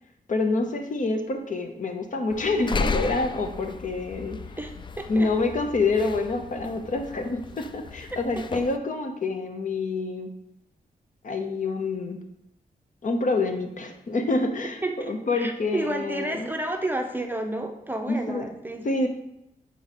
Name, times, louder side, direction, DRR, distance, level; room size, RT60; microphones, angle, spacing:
voice 1, 0.3-4.4 5.1-10.3 11.2-12.2 13.0-14.8 15.1-16.5 18.1-18.4 18.8-19.1, left 3 dB, 60° left, 5 dB, 0.8 m, -27 dB
sound 1, 2.3-8.8, left 4 dB, 30° left, 0.3 m, -34 dB
voice 2, 4.6-5.3 14.8-18.9, right 1 dB, 15° right, 4 dB, 0.6 m, -31 dB
7.5 x 4.2 x 4.2 m, 0.83 s
wide cardioid pair, 120°, 15 cm